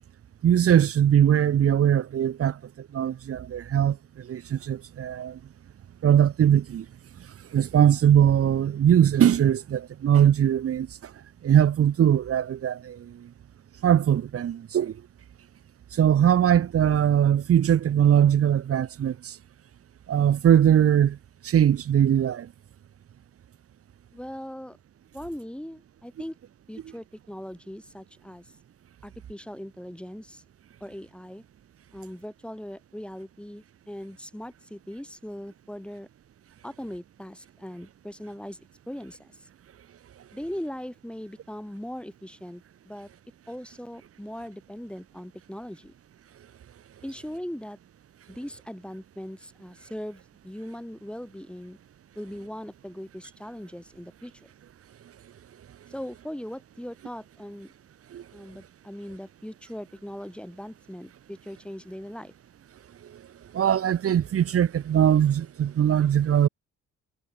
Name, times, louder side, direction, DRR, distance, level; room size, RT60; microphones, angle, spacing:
voice 1, 0.4-5.4 6.0-6.9 7.5-11.1 11.4-13.3 13.8-15.0 15.9-19.4 20.1-21.2 21.4-22.5 58.1-58.2 63.1-63.2 63.5-66.5, right 9 dB, 50° right, 1.0 m, -21 dB
voice 2, 24.1-24.8 25.1-26.4 26.7-28.5 29.0-30.4 30.8-31.4 31.9-36.1 36.6-39.5 40.3-43.1 43.5-45.9 47.0-47.8 48.3-51.8 52.1-54.3 55.9-57.7 58.3-62.3, equal, 5° left, 6.4 m, -39 dB
cardioid pair, 90°, 30 cm